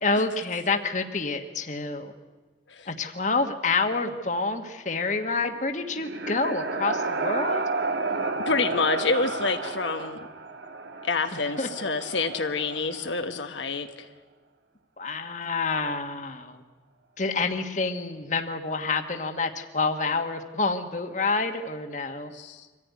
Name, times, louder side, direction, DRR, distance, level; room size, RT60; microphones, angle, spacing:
voice 1, 0.0-2.1 2.9-7.6 11.3-11.7 15.0-16.6 17.2-22.3, left 3 dB, 40° left, 6 dB, 1.5 m, -28 dB
sound 1, 5.6-13.4, right 3 dB, 70° right, 1.3 m, -32 dB
voice 2, 8.5-10.2 11.0-14.1 22.3-22.6, left 4 dB, 80° left, 6 dB, 1.1 m, -27 dB
24.5 x 14.5 x 9.5 m, 1.3 s
head